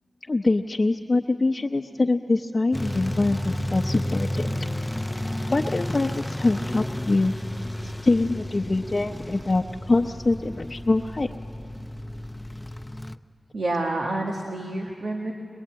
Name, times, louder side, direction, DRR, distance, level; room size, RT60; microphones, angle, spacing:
voice 1, 0.3-4.5 5.5-7.3 7.8-11.3, left 2 dB, 40° left, 1 dB, 0.7 m, -24 dB
sound 1, 2.7-13.2, left 1 dB, 10° left, 0.6 m, -32 dB
voice 2, 13.5-15.3, right 2 dB, 90° right, 0 dB, 1.8 m, -28 dB
23.0 x 22.5 x 8.8 m, 2.5 s
wide cardioid pair, 100°, 0 cm